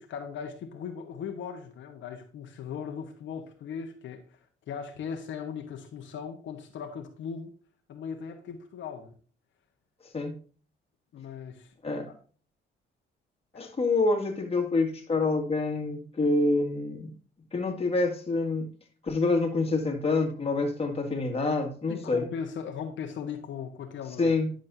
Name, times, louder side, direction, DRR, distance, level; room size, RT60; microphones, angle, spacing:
voice 1, 0.0-4.4 4.7-7.5 7.9-9.1 11.1-12.0 13.5-13.7 21.9-24.3, left 7 dB, 70° left, 1.2 m, -38 dB
voice 2, 13.5-17.1 17.5-18.7 19.0-22.3 24.2-24.5, left 3 dB, 30° left, 2.1 m, -27 dB
10.5 x 6.4 x 2.7 m
cardioid pair, 90°, 20 cm